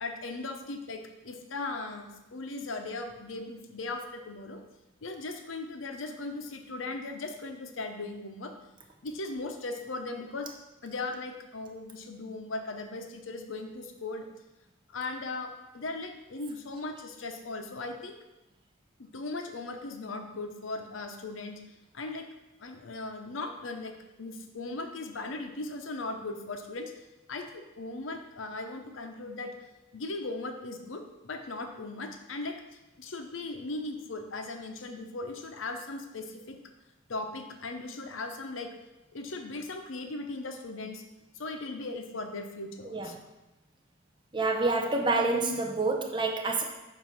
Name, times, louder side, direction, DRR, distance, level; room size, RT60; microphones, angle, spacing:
voice 1, 0.0-4.6 5.0-8.6 9.0-10.5 10.8-14.3 14.9-18.2 19.0-21.6 21.9-22.3 22.6-29.5 29.9-36.6 37.1-38.7 39.1-41.0 41.3-43.2, left 2 dB, 80° left, 5 dB, 0.7 m, -38 dB
voice 2, 44.3-46.6, right 3 dB, 25° right, 1 dB, 0.6 m, -27 dB
7.4 x 2.7 x 5.7 m, 1.0 s
head